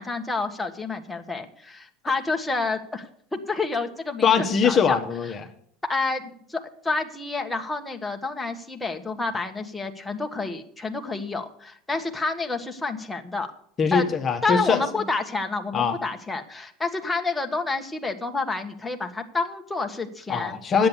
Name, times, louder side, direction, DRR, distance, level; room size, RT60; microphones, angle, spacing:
voice 1, 0.0-5.0 5.8-13.5 13.9-14.0 14.4-20.6, left 3 dB, 10° left, 3 dB, 1.2 m, -29 dB
voice 2, 4.2-5.4 13.8-14.8 15.7-16.0 20.3-20.9, left 6 dB, 35° left, 5 dB, 1.1 m, -22 dB
10.0 x 8.3 x 7.1 m, 0.65 s
supercardioid pair, 105°, 0 cm